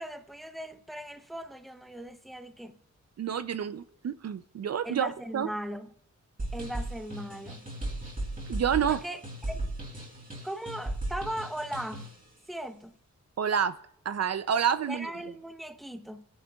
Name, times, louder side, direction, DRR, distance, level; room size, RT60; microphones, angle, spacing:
voice 1, 0.0-2.8 4.8-5.9 6.5-7.7 8.8-9.7 10.4-12.1 12.5-13.0 14.9-16.3, equal, ahead, 0.7 m, -38 dB
voice 2, 3.2-5.5 8.5-9.0 13.4-13.8 14.1-15.1, right 8 dB, 55° right, 0.5 m, -28 dB
sound 1, 6.4-12.2, right 1 dB, 30° right, 3.9 m, -36 dB
26.0 x 10.5 x 2.3 m
wide cardioid pair, 125°, 30 cm